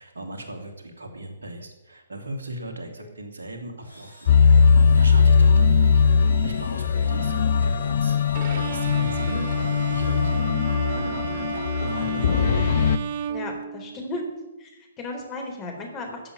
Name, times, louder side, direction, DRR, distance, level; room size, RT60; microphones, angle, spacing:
voice 1, 0.0-4.4 4.9-6.0 6.4-12.5, right 1 dB, 70° right, 3 dB, 2.8 m, -37 dB
Engine / Drill, 3.8-11.1, right 2 dB, 85° left, 6.9 m, -48 dB
sound 1, 4.3-13.0, left 5 dB, 55° left, 0.7 m, -20 dB
Bowed string instrument, 8.3-14.3, right 8 dB, 45° right, 0.8 m, -33 dB
voice 2, 13.3-14.3 14.6-16.2, left 2 dB, 25° left, 3 dB, 3.9 m, -35 dB
14.5 x 7.8 x 8.9 m, 1.0 s
figure-of-eight pair, 120°, 0 cm